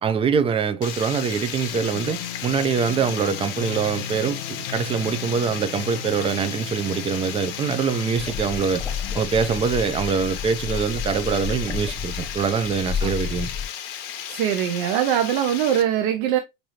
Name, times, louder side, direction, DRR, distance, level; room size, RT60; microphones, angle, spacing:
voice 1, 0.0-8.8 9.1-13.5, right 6 dB, 20° right, 0.4 m, -24 dB
Water, 0.8-15.8, left 9 dB, 55° left, 0.8 m, -34 dB
sound 1, 1.7-12.2, left 9 dB, 85° left, 0.7 m, -38 dB
sound 2, 8.1-13.7, left 6 dB, 10° left, 0.7 m, -31 dB
voice 2, 14.3-16.4, right 10 dB, 65° right, 0.6 m, -22 dB
4.8 x 2.6 x 2.8 m
supercardioid pair, 115°, 29 cm